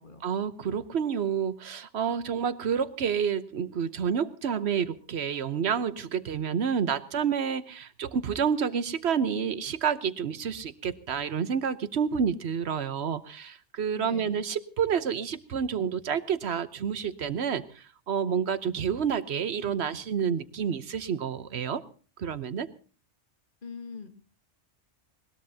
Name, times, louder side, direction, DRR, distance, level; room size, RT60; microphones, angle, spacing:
voice 1, 0.2-21.8 22.2-22.7, right 7 dB, 70° right, 13 dB, 1.1 m, -29 dB
voice 2, 13.9-14.5 23.6-24.1, left 5 dB, 45° left, 6 dB, 1.7 m, -43 dB
21.0 x 19.5 x 2.8 m, 0.38 s
omnidirectional pair, 1.2 m